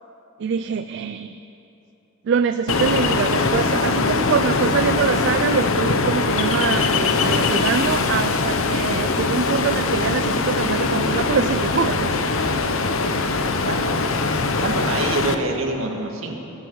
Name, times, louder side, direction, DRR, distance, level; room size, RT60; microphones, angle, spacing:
voice 1, 0.4-1.4 2.2-12.1, right 6 dB, 60° right, 11 dB, 0.4 m, -24 dB
Ocean, 2.7-15.3, left 3 dB, 75° left, 0.8 m, -21 dB
voice 2, 14.5-16.4, right 2 dB, 75° right, 2 dB, 1.8 m, -26 dB
17.0 x 14.5 x 4.8 m, 2.9 s
head